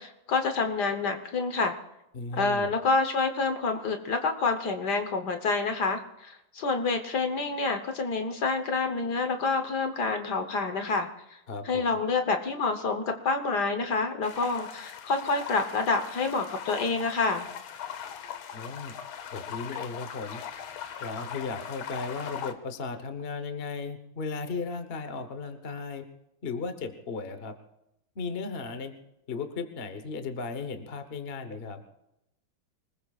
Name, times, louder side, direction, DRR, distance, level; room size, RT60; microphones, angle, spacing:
voice 1, 0.0-1.7 2.3-11.1 11.6-17.5, left 4 dB, 55° left, 6 dB, 1.6 m, -28 dB
voice 2, 2.1-2.7 11.5-12.0 18.5-18.9 19.3-20.4 21.0-26.0 26.4-27.5 28.1-28.9 29.3-31.8, left 4 dB, 35° left, 8 dB, 1.0 m, -36 dB
sound 1, 14.2-22.5, left 8 dB, 85° left, 1.8 m, -40 dB
25.5 x 20.0 x 2.4 m, 0.85 s
omnidirectional pair, 2.2 m